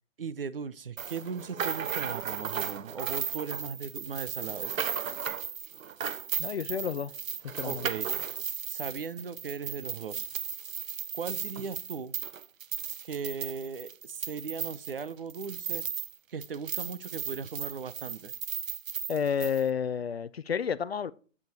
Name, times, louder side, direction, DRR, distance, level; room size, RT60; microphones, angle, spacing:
voice 1, 0.2-4.7 7.6-8.1 8.7-10.2 11.1-12.1 13.0-15.8 16.3-18.3, right 5 dB, 45° right, 0.6 m, -38 dB
sound 1, 1.0-16.2 16.4-19.6, right 8 dB, 85° right, 0.8 m, -36 dB
voice 2, 6.4-7.1 7.6-7.9 19.1-21.1, left 7 dB, 50° left, 0.5 m, -30 dB
8.6 x 6.7 x 4.7 m
hypercardioid pair, 170°, 39 cm